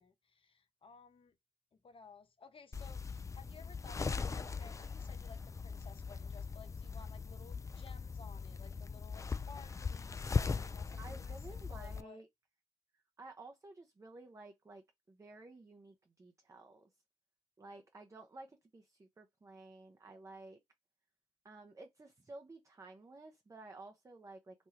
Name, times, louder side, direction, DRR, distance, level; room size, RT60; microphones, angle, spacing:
voice 1, 0.0-1.3 1.7-12.2, left 5 dB, 40° left, 0.8 m, -57 dB
sound 1, 2.7-12.0, left 5 dB, 25° left, 0.4 m, -40 dB
voice 2, 11.0-12.3 13.2-16.9 17.6-20.6 21.4-24.7, right 2 dB, 25° right, 0.6 m, -53 dB
3.0 x 2.2 x 3.1 m
hypercardioid pair, 45°, 13 cm